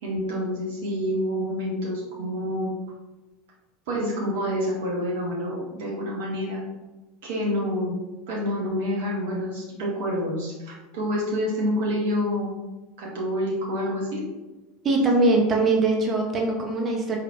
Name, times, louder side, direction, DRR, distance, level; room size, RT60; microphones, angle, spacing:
voice 1, 0.0-2.7 3.9-6.6 7.2-8.0 8.3-12.5 13.0-14.2, equal, 60° right, -4 dB, 0.9 m, -27 dB
voice 2, 14.8-17.2, right 2 dB, 30° right, 0 dB, 0.7 m, -21 dB
4.5 x 3.2 x 2.5 m, 1.1 s
figure-of-eight pair, 80°, 0 cm